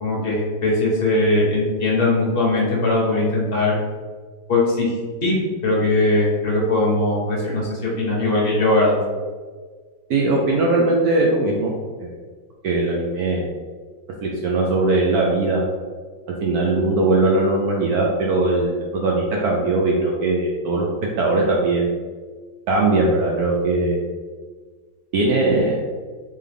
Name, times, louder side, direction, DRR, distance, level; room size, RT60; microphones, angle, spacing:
voice 1, 0.0-3.7 4.5-4.9 5.2-9.0, left 2 dB, 45° left, -4 dB, 0.7 m, -20 dB
voice 2, 10.1-11.7 12.0-12.1 12.6-13.5 14.2-15.6 16.4-20.9 21.2-21.9 22.7-24.1 25.1-25.8, right 2 dB, 75° right, -2 dB, 0.9 m, -20 dB
3.7 x 3.2 x 3.4 m, 1.5 s
omnidirectional pair, 2.0 m